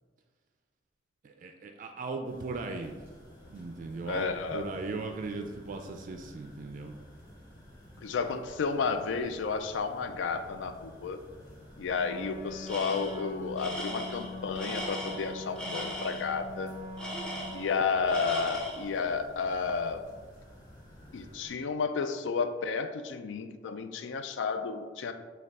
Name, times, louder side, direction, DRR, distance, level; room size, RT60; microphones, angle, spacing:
voice 1, 1.2-3.0 3.5-6.9, right 3 dB, 45° right, 4 dB, 0.3 m, -38 dB
sound 1, 2.2-21.5, equal, 25° left, 1.4 m, -52 dB
voice 2, 4.1-4.7 8.0-11.2 11.8-16.7 17.5-20.0 21.1-25.1, left 5 dB, 80° left, 9 dB, 0.4 m, -32 dB
Wind instrument woodwind instrument, 12.0-18.1, left 1 dB, 45° left, 1.0 m, -43 dB
Tools, 12.7-13.2 13.6-16.3 17.0-17.8 18.1-18.9, equal, 5° left, 0.6 m, -38 dB
6.3 x 2.3 x 3.5 m, 1.5 s
head